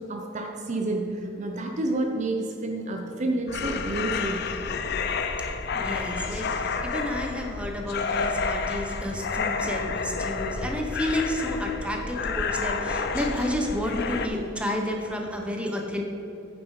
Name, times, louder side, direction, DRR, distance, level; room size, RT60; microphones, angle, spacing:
voice 1, 0.1-4.5, right 2 dB, 35° right, 3 dB, 0.6 m, -29 dB
sound 1, 3.5-14.3, left 4 dB, 55° left, 0.5 m, -30 dB
voice 2, 5.7-16.0, left 1 dB, 5° right, 1 dB, 0.9 m, -30 dB
9.1 x 7.0 x 4.8 m, 3.0 s
head